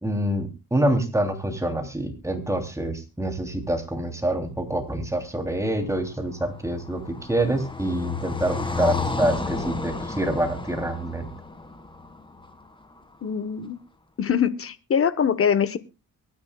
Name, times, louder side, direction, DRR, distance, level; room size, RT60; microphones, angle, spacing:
voice 1, 0.0-11.3, right 1 dB, 10° right, 5 dB, 3.1 m, -26 dB
Car passing by, 5.8-13.0, left 3 dB, 15° left, 1.9 m, -32 dB
voice 2, 13.2-13.8 14.2-15.8, left 7 dB, 40° left, 15 dB, 1.1 m, -23 dB
23.5 x 10.5 x 2.3 m, 0.27 s
cardioid pair, 100°, 34 cm